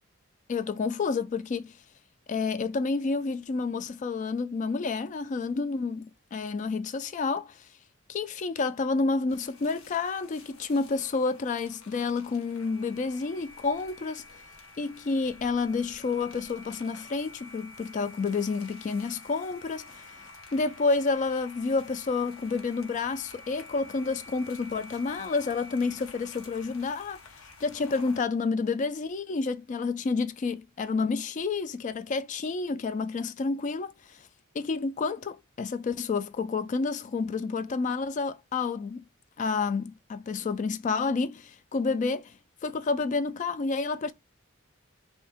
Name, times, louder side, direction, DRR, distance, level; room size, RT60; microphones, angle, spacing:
voice 1, 0.5-1.7 2.3-7.7 8.1-14.2 14.8-27.2 27.6-34.2 34.5-39.0 39.4-42.3 42.6-44.1, left 4 dB, 35° left, 0.3 m, -29 dB
sound 1, 9.3-28.2, left 3 dB, 80° left, 0.8 m, -49 dB
2.8 x 2.7 x 3.4 m
head